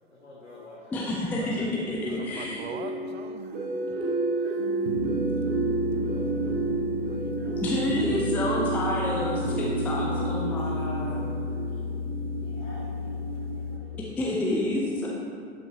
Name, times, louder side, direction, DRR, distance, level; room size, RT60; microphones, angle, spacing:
voice 1, 0.1-1.0 1.4-1.6 2.1-2.3 2.8-3.0 4.3-4.5 5.9-6.4 7.4-7.6 12.4-14.2, left 1 dB, 90° left, -7 dB, 1.5 m, -49 dB
voice 2, 0.9-2.7 7.6-11.2 14.2-15.1, left 1 dB, 5° left, -4 dB, 0.5 m, -29 dB
sound 1, 2.0-12.1, right 2 dB, 20° right, 1.2 m, -32 dB
voice 3, 2.3-4.3 7.4-7.6, right 7 dB, 60° right, 9 dB, 0.6 m, -42 dB
sound 2, 4.6-13.8, equal, 90° right, 1.1 m, -30 dB
11.5 x 5.4 x 2.8 m, 2.2 s
figure-of-eight pair, 110°, 36 cm